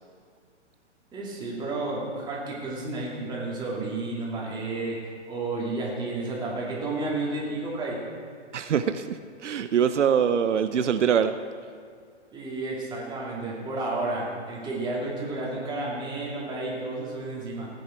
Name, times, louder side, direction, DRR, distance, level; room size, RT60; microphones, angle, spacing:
voice 1, 1.1-8.0 12.3-17.7, right 2 dB, 10° right, -5 dB, 2.5 m, -31 dB
voice 2, 8.5-11.4, right 8 dB, 80° right, 10 dB, 0.6 m, -24 dB
15.5 x 9.3 x 4.5 m, 2.2 s
hypercardioid pair, 135°, 35 cm